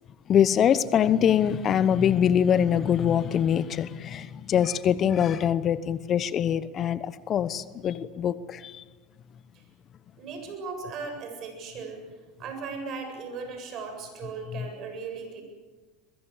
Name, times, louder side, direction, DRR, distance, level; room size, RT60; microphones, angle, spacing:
voice 1, 0.3-8.8 14.5-14.7, left 9 dB, 40° left, 16 dB, 1.0 m, -24 dB
voice 2, 10.2-12.0 12.4-15.4, right 4 dB, 50° right, 5 dB, 7.6 m, -37 dB
22.5 x 22.5 x 8.2 m, 1.4 s
hypercardioid pair, 85°, 0 cm